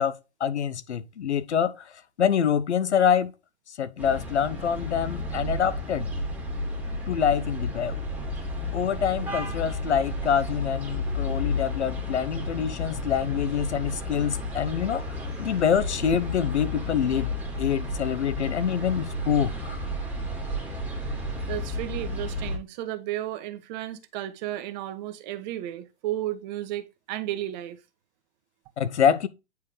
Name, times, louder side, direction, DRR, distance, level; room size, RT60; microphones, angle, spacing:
voice 1, 0.0-1.9 2.2-3.3 3.7-6.1 7.1-8.0 8.7-17.3 17.6-19.8 28.8-29.3, left 8 dB, 85° left, 0.9 m, -26 dB
sound 1, 4.0-22.6, left 2 dB, 5° right, 2.2 m, -32 dB
voice 2, 21.5-27.8, right 13 dB, 40° right, 1.2 m, -33 dB
9.4 x 4.7 x 3.2 m
hypercardioid pair, 125°, 33 cm